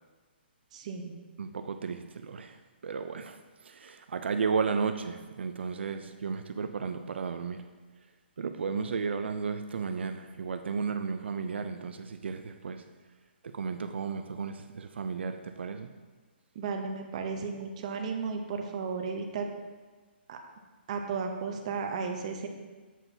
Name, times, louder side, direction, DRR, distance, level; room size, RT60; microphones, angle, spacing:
voice 1, 0.7-1.1 16.5-19.5 20.3-20.4 20.9-22.5, right 5 dB, 35° right, 4 dB, 0.7 m, -34 dB
voice 2, 1.4-2.6 2.8-3.4 3.6-7.6 8.4-12.8 13.4-15.9, right 5 dB, 85° right, 8 dB, 0.4 m, -33 dB
7.4 x 6.0 x 2.7 m, 1.3 s
hypercardioid pair, 165°, 6 cm